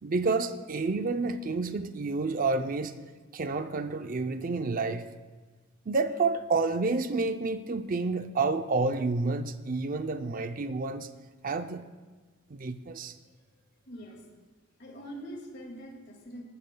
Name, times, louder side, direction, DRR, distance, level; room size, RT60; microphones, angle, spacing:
voice 1, 0.0-3.0 3.3-5.1 5.9-11.1 11.4-11.8 12.5-13.1, right 3 dB, 40° right, 9 dB, 0.5 m, -29 dB
voice 2, 13.9-14.2 14.8-16.4, equal, 55° left, 0 dB, 2.2 m, -43 dB
18.0 x 13.5 x 2.3 m, 1.3 s
head